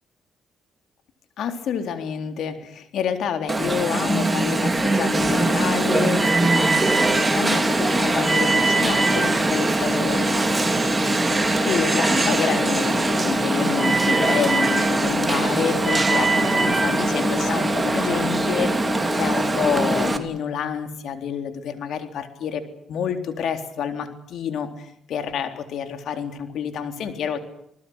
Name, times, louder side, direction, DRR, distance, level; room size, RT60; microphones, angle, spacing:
voice 1, 1.4-10.4 11.6-18.7 19.1-22.6 22.9-27.4, left 7 dB, 70° left, 7 dB, 3.7 m, -28 dB
Alarm, 3.5-20.2, right 2 dB, 20° right, 3.3 m, -21 dB
28.5 x 20.0 x 8.2 m, 0.71 s
cardioid pair, 90°, 0 cm